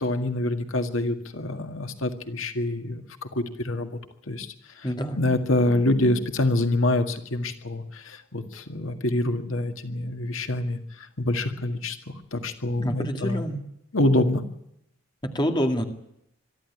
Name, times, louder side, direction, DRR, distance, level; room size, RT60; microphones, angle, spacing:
voice 1, 0.0-3.0 3.3-4.0 4.3-4.5 5.1-12.0 12.3-13.5 13.9-14.4, left 1 dB, 75° left, 6 dB, 1.9 m, -26 dB
voice 2, 4.8-5.2 12.8-13.6 15.2-15.8, equal, 20° left, 4 dB, 2.2 m, -27 dB
23.0 x 13.5 x 9.8 m, 0.78 s
head